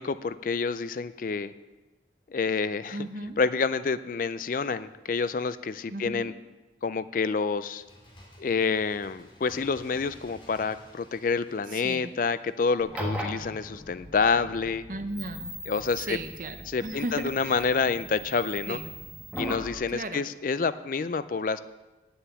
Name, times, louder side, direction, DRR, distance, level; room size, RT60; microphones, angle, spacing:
voice 1, 0.0-1.5 2.3-3.0 3.4-6.3 6.8-7.8 8.4-14.8 15.7-16.2 16.7-18.8 19.4-21.6, left 5 dB, 45° left, 14 dB, 0.4 m, -28 dB
voice 2, 2.9-3.4 5.9-6.4 11.7-12.1 14.9-15.5 16.0-17.7 18.7-18.9 19.9-20.2, right 2 dB, 45° right, 8 dB, 0.8 m, -36 dB
Bird, 7.6-13.1 13.4-13.5, left 1 dB, 25° left, 2.3 m, -54 dB
sound 1, 12.8-19.7, equal, 5° right, 1.4 m, -39 dB
9.1 x 7.0 x 8.8 m, 1.1 s
head